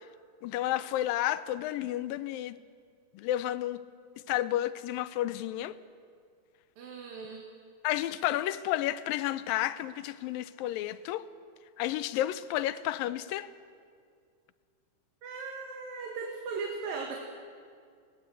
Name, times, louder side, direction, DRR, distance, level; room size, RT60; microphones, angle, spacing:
voice 1, 0.4-2.6 3.1-3.8 4.3-5.8 7.8-11.2 11.8-13.5, left 13 dB, 85° left, 2.4 m, -31 dB
voice 2, 6.8-7.5 15.2-17.2, right 4 dB, 90° right, 3.5 m, -38 dB
22.0 x 18.5 x 8.3 m
omnidirectional pair, 4.0 m